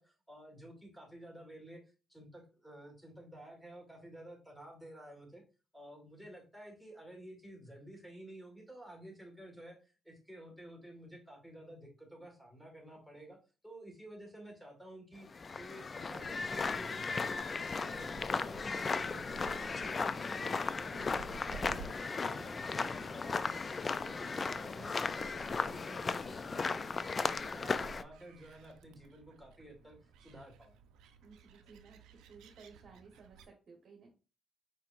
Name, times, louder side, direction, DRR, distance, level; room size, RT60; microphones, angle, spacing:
voice 1, 0.0-1.8 2.1-5.4 5.7-13.4 13.6-15.3 15.6-26.8 27.1-30.8, right 1 dB, ahead, 2 dB, 1.7 m, -52 dB
sound 1, 15.3-28.0, left 4 dB, 35° left, 0.3 m, -36 dB
Gull seagull, 17.7-33.5, right 5 dB, 90° right, 0.5 m, -55 dB
voice 2, 31.2-32.0 32.3-34.1, right 5 dB, 55° right, 0 dB, 1.2 m, -57 dB
4.9 x 4.4 x 2.5 m, 0.33 s
cardioid pair, 90°, 0 cm